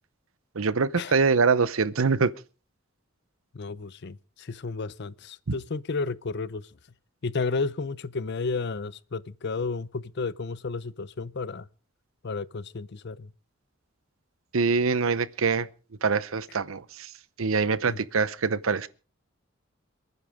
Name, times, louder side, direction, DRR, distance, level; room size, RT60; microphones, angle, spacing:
voice 1, 0.5-2.3 5.5-5.6 14.5-15.7 16.0-17.1 17.4-18.9, right 4 dB, 80° right, 0.8 m, -24 dB
voice 2, 3.5-6.7 7.2-11.7 12.2-13.3 17.9-18.0, left 4 dB, 55° left, 0.6 m, -32 dB
27.5 x 9.8 x 3.6 m
head